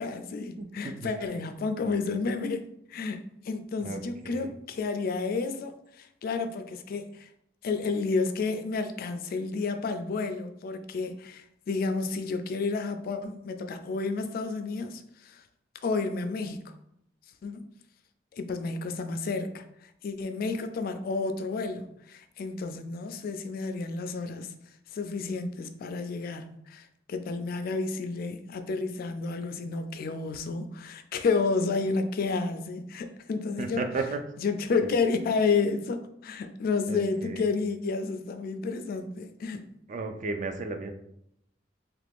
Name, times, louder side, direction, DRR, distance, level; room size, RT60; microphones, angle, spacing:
voice 1, 0.0-7.3 7.6-15.4 15.8-16.6 17.4-17.6 18.3-24.5 24.9-33.8 34.4-39.6, left 4 dB, 55° left, 0.3 m, -31 dB
voice 2, 0.6-1.3 1.8-2.0 3.8-4.6 33.6-34.2 36.9-37.4 39.9-40.9, right 3 dB, 45° right, 0.4 m, -35 dB
2.9 x 2.5 x 3.4 m
head